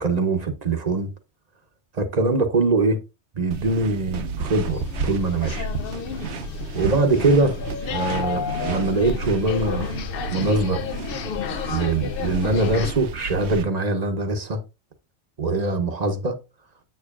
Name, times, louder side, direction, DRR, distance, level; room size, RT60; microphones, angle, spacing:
voice 1, 0.0-1.1 2.0-3.0 3.4-5.7 6.7-7.6 7.9-9.9 10.3-10.8 11.7-14.6 15.4-16.3, right 3 dB, 40° right, 0.9 m, -22 dB
sound 1, 3.5-13.6, right 4 dB, 65° right, 1.0 m, -33 dB
sound 2, 4.7-12.9, left 6 dB, 60° left, 0.7 m, -31 dB
7.8 x 6.7 x 2.4 m
omnidirectional pair, 1.2 m